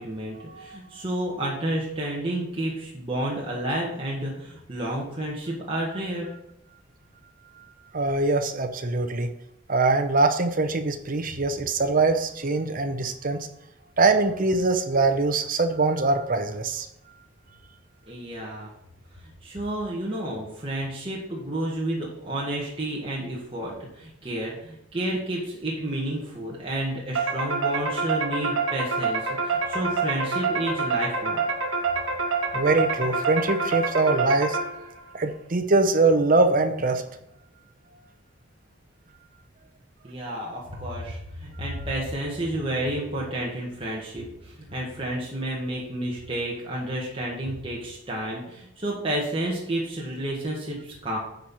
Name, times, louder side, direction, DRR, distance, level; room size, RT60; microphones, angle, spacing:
voice 1, 0.0-6.3 18.1-18.7 19.4-31.4 40.0-51.2, right 1 dB, 30° right, -4 dB, 1.7 m, -31 dB
voice 2, 7.9-9.3 9.7-13.5 14.0-16.9 32.5-34.6 35.1-37.0, right 3 dB, 45° right, 7 dB, 0.8 m, -23 dB
sound 1, 27.1-35.0, right 4 dB, 80° right, 1.5 m, -27 dB
9.3 x 4.6 x 5.5 m, 0.81 s
head